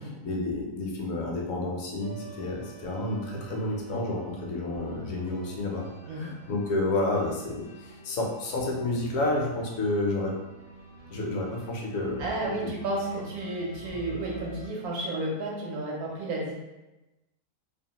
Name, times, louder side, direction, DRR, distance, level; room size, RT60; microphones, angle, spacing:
voice 1, 0.0-10.3 11.1-12.7, left 2 dB, 70° left, -1 dB, 0.9 m, -30 dB
sound 1, 2.0-14.7, right 2 dB, 30° right, 0.5 m, -46 dB
voice 2, 6.1-6.4 12.2-16.5, right 2 dB, 80° right, -3 dB, 1.0 m, -32 dB
2.7 x 2.1 x 2.8 m, 1.0 s
omnidirectional pair, 1.6 m